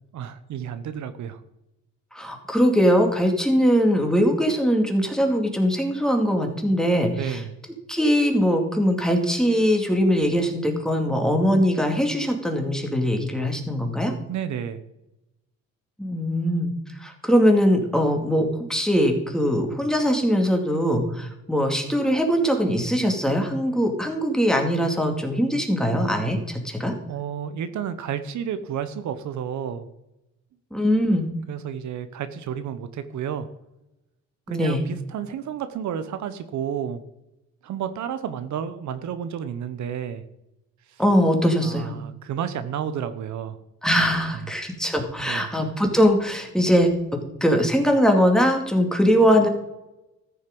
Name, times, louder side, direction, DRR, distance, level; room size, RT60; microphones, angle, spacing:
voice 1, 0.1-1.4 7.1-7.5 14.3-14.8 27.1-29.9 31.5-33.5 34.5-37.0 37.6-40.2 40.9-41.0 41.6-43.6 44.4-44.5 45.2-45.5, right 8 dB, 70° right, 11 dB, 0.9 m, -31 dB
voice 2, 2.1-7.4 7.9-14.1 16.0-16.7 17.0-26.9 30.7-31.3 34.5-34.8 41.0-41.9 43.8-46.9 47.4-49.5, equal, ahead, 3 dB, 2.4 m, -21 dB
14.0 x 6.5 x 5.3 m, 0.91 s
cardioid pair, 90°, 30 cm